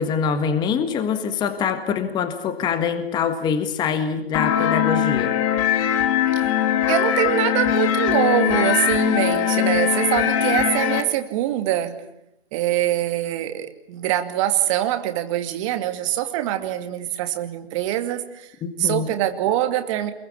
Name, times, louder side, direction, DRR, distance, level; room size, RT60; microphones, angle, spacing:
voice 1, 0.0-5.4 18.6-19.1, left 6 dB, 15° left, 9 dB, 1.6 m, -24 dB
sound 1, 4.3-11.0, left 10 dB, 30° left, 2.6 m, -21 dB
voice 2, 6.9-12.0 12.5-18.5 18.8-20.1, right 13 dB, 30° right, 8 dB, 2.4 m, -24 dB
28.5 x 22.5 x 8.6 m, 0.79 s
hypercardioid pair, 145°, 33 cm